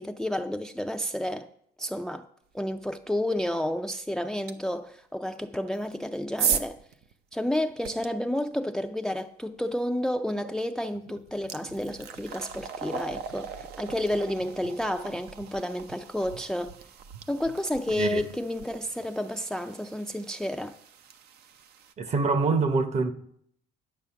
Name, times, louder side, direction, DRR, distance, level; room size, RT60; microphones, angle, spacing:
voice 1, 0.0-1.5 1.8-2.3 2.5-6.8 7.3-16.7 17.3-20.7, left 1 dB, 5° left, 0.4 m, -31 dB
sound 1, 4.5-4.6 5.6-8.1 10.4-10.5 10.9-21.9, right 7 dB, 70° right, 0.7 m, -37 dB
voice 2, 22.0-23.1, right 4 dB, 40° right, 0.9 m, -25 dB
10.0 x 6.8 x 5.7 m
cardioid pair, 110°, 17 cm